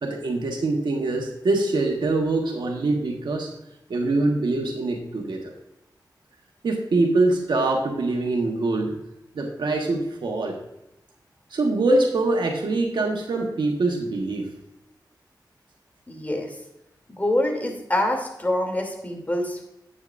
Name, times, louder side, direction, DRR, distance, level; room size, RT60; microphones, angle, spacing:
voice 1, 0.0-3.5 3.9-5.5 6.6-8.9 9.3-10.6 11.5-14.5, right 2 dB, 85° right, 1 dB, 1.4 m, -24 dB
voice 2, 16.1-16.5 17.1-19.7, left 1 dB, 20° left, 2 dB, 2.9 m, -25 dB
10.5 x 9.1 x 2.6 m, 0.88 s
cardioid pair, 60°, 8 cm